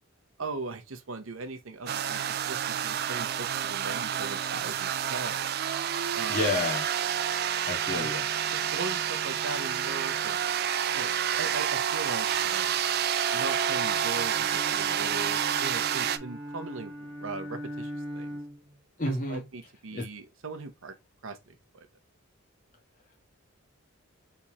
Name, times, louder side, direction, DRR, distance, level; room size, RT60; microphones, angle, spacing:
voice 1, 0.4-5.5 6.1-6.7 7.8-8.1 8.5-10.4 10.9-12.8 13.3-18.4 19.1-20.9 21.2-21.9, right 3 dB, 70° right, 0.7 m, -39 dB
sound 1, 1.9-16.2, right 9 dB, 45° right, 0.3 m, -29 dB
voice 2, 6.3-6.8 7.7-8.2 19.0-19.4 19.9-20.0, left 2 dB, 35° left, 1.6 m, -29 dB
Bowed string instrument, 13.5-18.7, equal, 20° right, 1.0 m, -40 dB
4.1 x 3.5 x 2.9 m
head